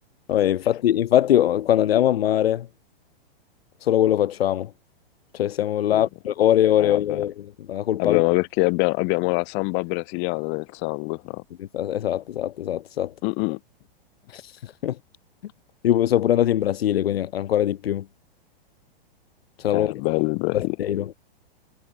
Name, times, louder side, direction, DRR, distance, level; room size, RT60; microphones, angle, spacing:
voice 1, 0.3-2.7 3.8-4.7 5.3-7.3 7.7-8.2 11.7-13.1 14.3-14.4 14.8-14.9 15.8-18.0 19.6-19.9 20.5-21.1, left 11 dB, 85° left, 0.7 m, -21 dB
voice 2, 6.8-7.3 8.0-11.4 13.2-13.6 19.7-20.8, left 35 dB, 40° left, 2.6 m, -25 dB
hypercardioid pair, 135°, 29 cm